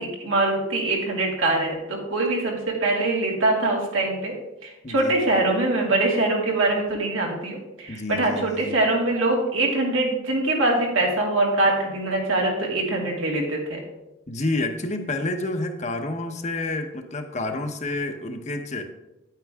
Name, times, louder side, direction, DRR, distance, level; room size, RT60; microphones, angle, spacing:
voice 1, 0.0-4.3 4.6-13.8, right 2 dB, 90° right, -1 dB, 2.5 m, -23 dB
voice 2, 4.8-5.2 7.9-8.8 14.3-18.8, left 2 dB, 35° left, 6 dB, 0.9 m, -29 dB
9.8 x 9.0 x 3.6 m, 0.93 s
head